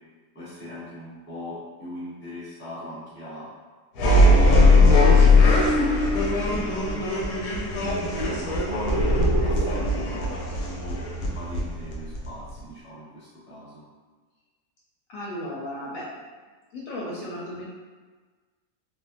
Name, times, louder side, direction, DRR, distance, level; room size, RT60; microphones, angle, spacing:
voice 1, 0.3-3.5 4.1-7.0 7.8-10.3 10.6-13.8, equal, 10° left, -9 dB, 0.7 m, -39 dB
sound 1, 4.0-12.6, left 2 dB, 90° left, 1.2 m, -19 dB
voice 2, 15.1-16.3 16.7-17.7, left 1 dB, 70° left, -5 dB, 0.9 m, -35 dB
3.4 x 2.0 x 2.5 m, 1.4 s
omnidirectional pair, 1.7 m